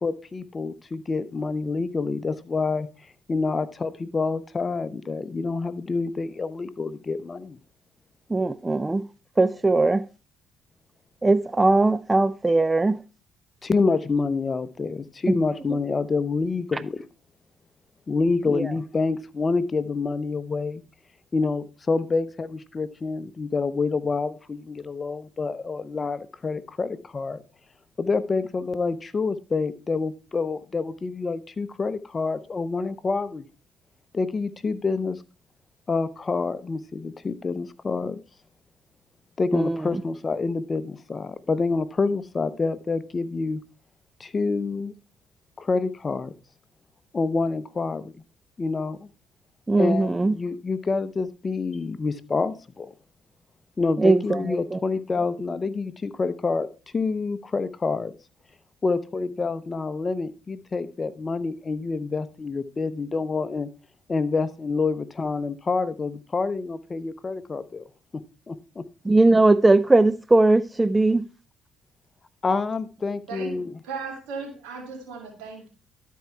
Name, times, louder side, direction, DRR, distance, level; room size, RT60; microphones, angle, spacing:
voice 1, 0.0-2.9 3.3-7.6 13.6-17.0 18.1-20.8 21.3-27.4 28.0-33.4 34.1-35.2 35.9-38.2 39.4-43.6 44.2-44.9 45.6-46.3 47.1-48.1 48.6-49.1 49.8-52.9 53.8-56.7 56.9-58.1 58.8-63.7 64.1-67.9 68.5-68.8 72.4-73.8, left 4 dB, 35° left, 0.7 m, -27 dB
voice 2, 8.3-9.0 9.4-10.0 11.2-13.0 18.5-18.6 39.5-39.7 49.7-50.3 54.0-54.4 54.7-54.8 69.1-71.2, right 2 dB, 20° right, 0.3 m, -19 dB
voice 3, 73.3-75.7, right 5 dB, 85° right, 2.3 m, -36 dB
12.0 x 4.6 x 4.5 m
supercardioid pair, 60°, 0 cm